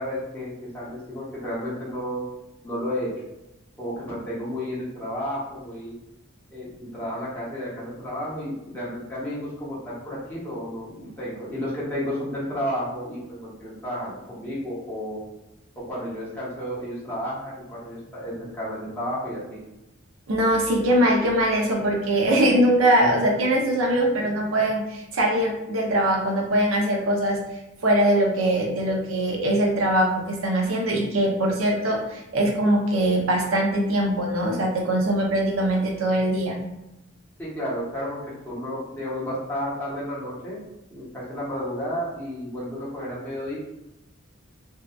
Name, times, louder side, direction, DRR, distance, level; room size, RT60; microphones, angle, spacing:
voice 1, 0.0-2.2 2.6-3.1 3.8-5.9 6.5-15.2 15.8-19.4 37.4-40.6 40.9-43.6, equal, 10° left, -9 dB, 0.8 m, -32 dB
voice 2, 20.3-27.4 27.8-36.6, right 1 dB, 85° right, 0 dB, 0.6 m, -22 dB
2.7 x 2.2 x 2.3 m, 0.93 s
head